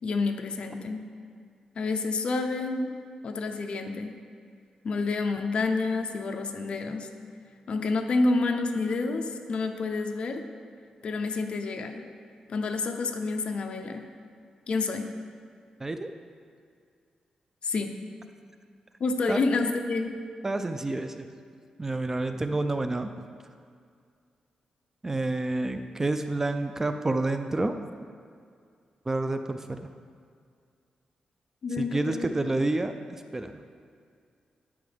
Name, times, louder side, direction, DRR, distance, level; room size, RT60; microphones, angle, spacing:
voice 1, 0.0-1.1 1.8-2.9 3.2-4.2 4.8-7.1 7.7-10.4 11.0-12.1 12.5-14.1 14.7-15.1 17.6-18.0 19.0-20.2 31.6-32.3, left 3 dB, 55° left, 5 dB, 0.6 m, -29 dB
voice 2, 20.4-21.3 21.8-23.1 25.0-27.8 29.1-29.8 31.7-33.6, right 2 dB, 20° right, 7 dB, 0.3 m, -29 dB
11.5 x 5.0 x 3.4 m, 2.2 s
wide cardioid pair, 115°, 2 cm